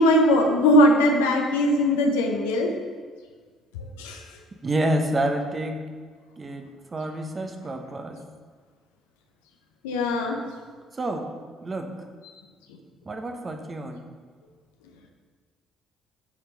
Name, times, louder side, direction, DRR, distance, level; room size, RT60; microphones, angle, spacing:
voice 1, 0.0-2.7 3.7-4.2 9.8-10.4, left 1 dB, 85° left, 2 dB, 0.9 m, -20 dB
voice 2, 4.6-5.8 6.4-8.2 10.9-11.3 11.6-11.9 13.0-14.1, right 1 dB, 35° right, 4 dB, 1.1 m, -28 dB
8.5 x 4.6 x 5.3 m, 1.6 s
hypercardioid pair, 50°, 0 cm